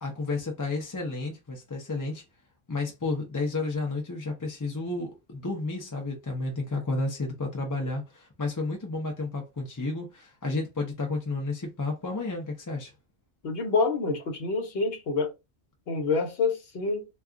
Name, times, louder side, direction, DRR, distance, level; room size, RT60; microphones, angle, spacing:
voice 1, 0.0-2.2 2.7-12.9, left 3 dB, 25° left, 0.4 m, -31 dB
voice 2, 13.4-15.3 15.9-17.1, left 4 dB, 65° left, 1.0 m, -27 dB
2.3 x 2.3 x 3.6 m
omnidirectional pair, 1.1 m